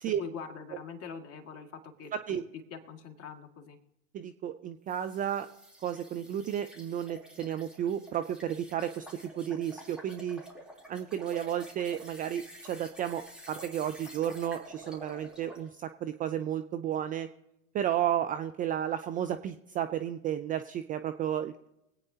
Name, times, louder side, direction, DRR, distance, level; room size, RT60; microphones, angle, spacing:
voice 1, 0.2-1.7 2.0-2.4 2.7-3.8, left 6 dB, 35° left, 4 dB, 1.9 m, -43 dB
voice 2, 2.1-2.4 4.1-5.5 5.8-10.4 10.9-17.3 17.7-21.7, right 10 dB, 20° right, 9 dB, 0.4 m, -33 dB
sound 1, 4.9-15.7, right 1 dB, ahead, 3.2 m, -50 dB
24.0 x 8.9 x 2.8 m, 0.90 s
hypercardioid pair, 90°, 41 cm